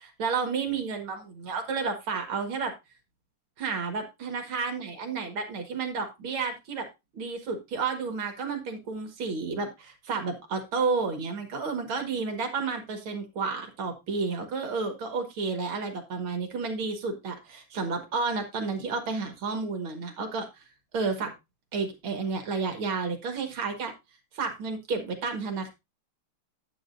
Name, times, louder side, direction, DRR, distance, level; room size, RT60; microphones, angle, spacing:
voice 1, 0.0-2.7 3.6-6.9 7.1-20.6 20.9-21.3 21.7-23.9 24.3-25.7, right 4 dB, 75° right, 5 dB, 2.4 m, -31 dB
10.5 x 8.4 x 2.6 m, 0.23 s
omnidirectional pair, 2.3 m